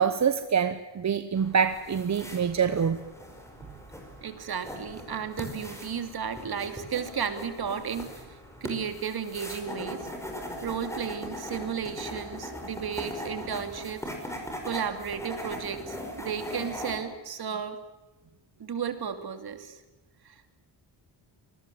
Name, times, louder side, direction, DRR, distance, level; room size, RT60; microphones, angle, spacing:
voice 1, 0.0-3.0, right 7 dB, 40° right, 11 dB, 1.0 m, -25 dB
sound 1, 1.4-17.0, equal, 5° left, 5.4 m, -40 dB
voice 2, 4.2-10.1 10.6-14.0 14.6-17.8 18.6-19.7 20.2-20.5, right 7 dB, 55° right, 9 dB, 2.8 m, -34 dB
26.0 x 20.5 x 7.7 m, 1.1 s
wide cardioid pair, 150°, 44 cm